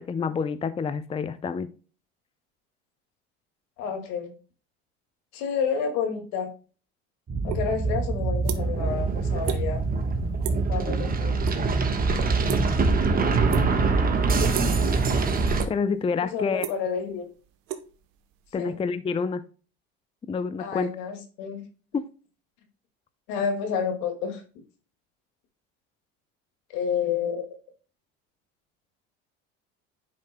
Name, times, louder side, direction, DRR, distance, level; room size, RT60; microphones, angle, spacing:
voice 1, 0.0-1.7 15.7-16.7 18.5-19.4 20.3-20.9 21.9-22.0, left 5 dB, 20° left, 12 dB, 0.5 m, -28 dB
voice 2, 3.8-4.3 5.3-6.5 7.4-9.8 10.7-11.3 16.2-17.3 18.6-18.8 20.6-21.6 23.3-24.4 26.7-27.4, left 6 dB, 75° left, 5 dB, 2.1 m, -29 dB
sound 1, 7.3-15.6, right 4 dB, 30° right, 1.2 m, -24 dB
sound 2, 7.5-7.7 8.0-8.9 9.2-9.6 9.9-10.2 10.4-10.7 11.1-11.6 11.9-13.0 13.5-13.9 14.5-14.9 15.3-16.0 16.3-18.5, right 11 dB, 75° right, 1.0 m, -35 dB
10.5 x 5.3 x 2.2 m, 0.36 s
supercardioid pair, 90°, 32 cm